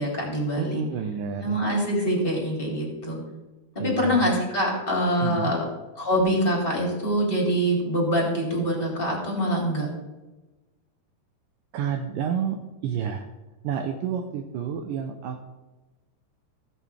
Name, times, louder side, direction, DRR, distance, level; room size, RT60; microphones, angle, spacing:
voice 1, 0.0-0.8 1.4-3.2 3.8-5.6 6.0-9.9, equal, 15° left, -2 dB, 2.7 m, -24 dB
voice 2, 0.6-1.6 3.8-4.3 5.2-5.6 11.7-13.3 13.6-15.4, right 7 dB, 80° right, 3 dB, 2.0 m, -30 dB
16.0 x 7.7 x 3.4 m, 1.1 s
omnidirectional pair, 4.6 m